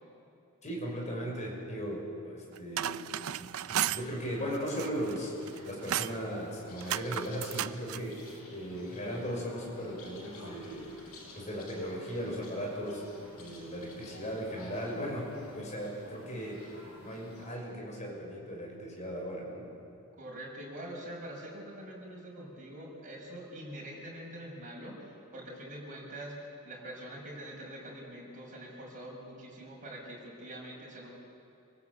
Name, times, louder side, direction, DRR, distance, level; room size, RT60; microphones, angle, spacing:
voice 1, 0.6-3.0 3.4-11.0 11.3-13.0 13.4-16.6 17.0-19.7, equal, 35° left, -1 dB, 5.9 m, -37 dB
sound 1, 2.6-4.1 4.6-5.2 5.5-6.2 6.8-8.1, right 11 dB, 70° right, 0.5 m, -34 dB
sound 2, 3.7-17.5, left 1 dB, 75° left, 5.9 m, -50 dB
voice 2, 20.2-31.1, right 1 dB, 40° right, -2 dB, 6.5 m, -44 dB
27.5 x 17.5 x 8.5 m, 2.7 s
head